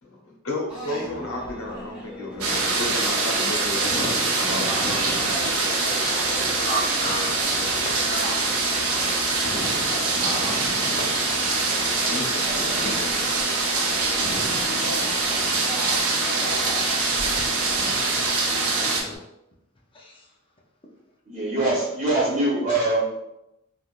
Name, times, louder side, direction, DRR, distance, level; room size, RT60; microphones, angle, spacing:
voice 1, 0.0-4.7 6.3-6.6 10.1-11.0 11.7-13.2 15.1-15.3 17.7-18.0, left 2 dB, 80° left, -1 dB, 0.9 m, -34 dB
sound 1, 0.7-19.2, equal, 5° right, 1.0 m, -36 dB
sound 2, 2.4-19.0, right 3 dB, 90° right, 0.6 m, -24 dB
voice 2, 6.0-6.3 6.7-7.3 7.7-8.7 9.2-9.3 9.9-10.0 11.9-12.1 14.4-14.5 17.4-17.5 18.9-19.2 19.9-20.2, equal, 25° left, -2 dB, 0.6 m, -34 dB
voice 3, 21.3-23.2, right 2 dB, 30° right, -8 dB, 1.1 m, -23 dB
3.4 x 2.4 x 2.5 m, 0.87 s
head